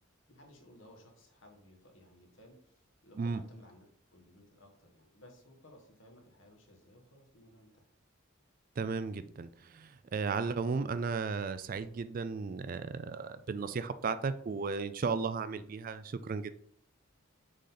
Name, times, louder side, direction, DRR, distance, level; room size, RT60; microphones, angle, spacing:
voice 1, 0.3-3.9 4.1-7.8, left 1 dB, 70° left, 2 dB, 1.4 m, -58 dB
voice 2, 8.8-16.6, right 4 dB, 45° right, 13 dB, 0.3 m, -35 dB
6.5 x 3.9 x 4.0 m, 0.62 s
head